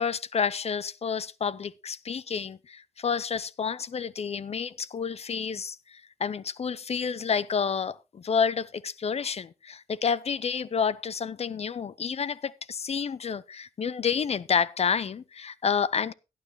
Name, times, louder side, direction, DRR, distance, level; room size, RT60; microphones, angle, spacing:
voice 1, 0.0-16.1, left 6 dB, 50° left, 0.6 m, -29 dB
17.5 x 9.3 x 3.0 m
cardioid pair, 85°, 13 cm